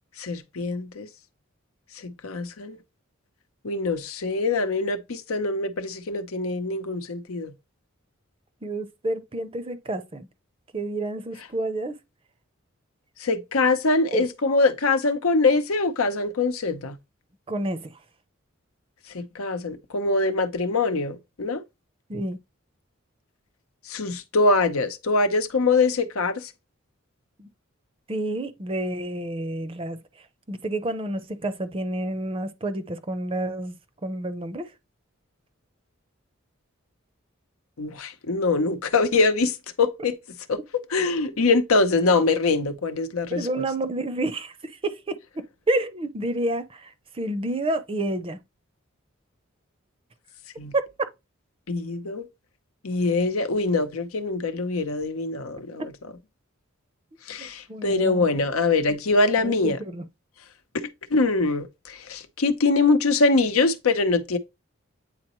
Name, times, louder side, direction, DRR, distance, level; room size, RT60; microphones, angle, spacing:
voice 1, 0.2-1.1 2.0-2.8 3.6-7.5 13.2-17.0 19.1-21.6 23.9-26.5 37.8-40.1 40.5-40.6 40.9-43.4 50.6-50.7 51.7-52.3 52.8-55.8 57.3-59.8 60.7-64.4, left 3 dB, 90° left, 0.8 m, -23 dB
voice 2, 8.6-10.3 10.7-12.0 14.1-14.2 17.5-18.0 22.1-22.4 27.4-27.5 28.1-33.8 34.0-34.7 43.3-45.2 45.7-48.4 50.7-50.9 57.4-58.3 58.9-59.0 59.4-60.1, right 1 dB, 25° right, 0.6 m, -29 dB
8.8 x 4.0 x 3.0 m
head